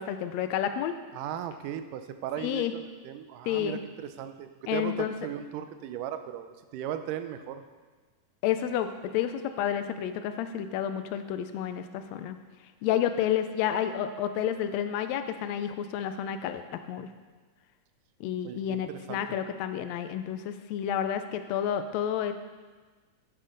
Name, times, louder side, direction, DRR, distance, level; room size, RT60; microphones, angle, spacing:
voice 1, 0.0-1.0 2.4-2.7 3.5-3.8 4.7-5.1 8.4-12.4 12.8-17.1 18.2-22.3, left 10 dB, 85° left, 9 dB, 1.5 m, -30 dB
voice 2, 1.1-7.6 18.4-19.2, right 10 dB, 85° right, 9 dB, 2.2 m, -37 dB
10.5 x 9.2 x 3.8 m, 1.4 s
omnidirectional pair, 3.6 m